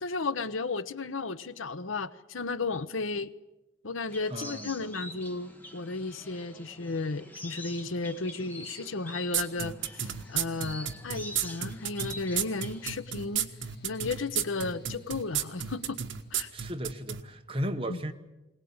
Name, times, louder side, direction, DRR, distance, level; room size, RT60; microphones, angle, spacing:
voice 1, 0.0-3.3 3.8-13.5 13.8-16.0 16.3-16.5 17.9-18.0, left 3 dB, 80° left, 0.9 m, -34 dB
sound 1, 4.1-12.9, left 1 dB, 10° left, 1.5 m, -46 dB
voice 2, 4.3-4.7 16.5-18.1, equal, 25° right, 1.3 m, -35 dB
sound 2, 9.3-17.2, right 10 dB, 70° right, 1.3 m, -32 dB
Mechanical fan, 10.1-16.5, left 1 dB, 55° left, 2.4 m, -51 dB
22.0 x 19.0 x 8.8 m
head